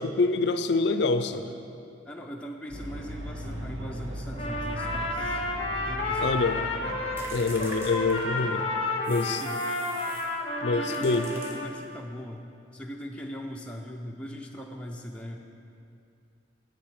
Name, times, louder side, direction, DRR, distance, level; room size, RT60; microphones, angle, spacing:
voice 1, 0.0-1.5 6.2-6.6 7.3-8.6 9.1-9.4 10.6-11.3, left 3 dB, 60° left, 9 dB, 0.5 m, -26 dB
voice 2, 2.0-7.3 8.5-8.6 9.1-9.6 10.7-12.4 12.7-15.4, equal, 5° left, -1 dB, 0.5 m, -40 dB
sound 1, 2.7-8.5, equal, 85° right, 1.6 m, -39 dB
Trumpet, 4.3-7.3 7.6-11.7, left 2 dB, 30° left, 0.9 m, -31 dB
sound 2, 7.2-8.6 9.0-10.4 10.9-12.0, equal, 15° right, 1.0 m, -44 dB
10.0 x 5.6 x 7.5 m, 2.6 s
head